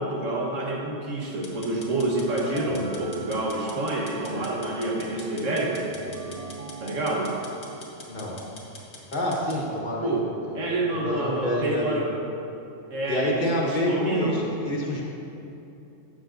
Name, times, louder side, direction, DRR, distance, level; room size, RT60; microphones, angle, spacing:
voice 1, 0.0-5.9 6.8-7.3 10.0-12.1 12.9-14.4, right 1 dB, 85° right, -2 dB, 1.6 m, -28 dB
sound 1, 1.4-9.6, left 3 dB, 85° left, 1.5 m, -45 dB
sound 2, 2.5-8.2, right 4 dB, 60° right, 0.4 m, -41 dB
voice 2, 9.1-10.1 10.7-12.0 13.1-15.0, left 1 dB, 40° left, -3 dB, 1.5 m, -27 dB
12.0 x 7.8 x 2.6 m, 2.9 s
omnidirectional pair, 1.3 m